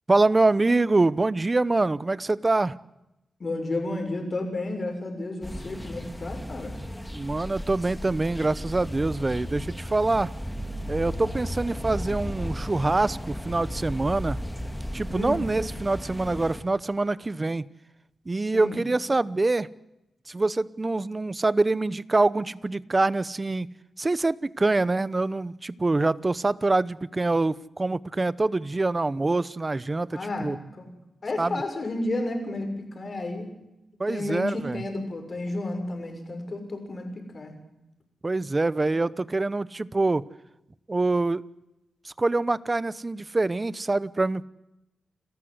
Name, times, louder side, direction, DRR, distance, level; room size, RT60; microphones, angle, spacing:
voice 1, 0.1-2.8 7.1-10.3 10.9-14.4 14.9-17.7 18.3-19.7 20.3-30.6 31.4-31.6 34.0-34.8 38.2-40.2 40.9-41.4 42.0-44.5, right 2 dB, 25° right, 18 dB, 0.8 m, -25 dB
voice 2, 3.4-6.7 15.1-15.4 18.5-18.8 30.1-30.9 31.2-33.5 34.1-37.5, left 2 dB, 45° left, 5 dB, 6.4 m, -32 dB
sound 1, 5.4-16.6, equal, 5° left, 2.2 m, -35 dB
29.5 x 14.0 x 8.1 m, 0.91 s
cardioid pair, 95°, 0 cm